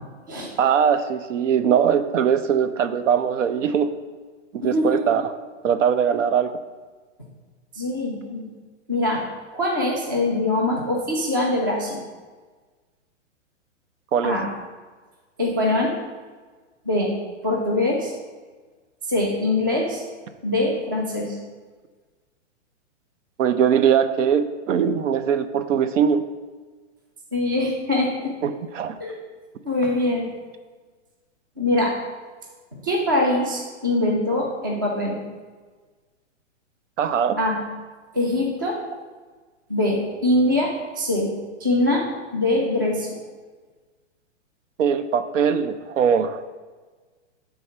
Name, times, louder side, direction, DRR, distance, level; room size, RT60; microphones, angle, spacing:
voice 1, 0.6-3.9 4.6-5.2 5.6-6.5 14.1-14.4 23.4-26.2 28.4-29.0 37.0-37.4 44.8-46.4, right 7 dB, 80° right, 11 dB, 0.6 m, -21 dB
voice 2, 4.6-5.1 7.7-8.5 8.9-9.2 9.5-12.0 14.2-14.5 15.4-15.9 16.9-17.1 17.4-18.1 19.1-20.0 20.4-21.4 27.3-28.3 29.0-29.2 29.6-30.3 31.6-32.0 32.7-35.2 37.4-37.6 38.1-38.8 39.7-41.3 41.6-42.1 42.3-43.2, left 1 dB, 20° right, -1 dB, 0.3 m, -23 dB
7.0 x 3.5 x 5.3 m, 1.4 s
hypercardioid pair, 165°, 37 cm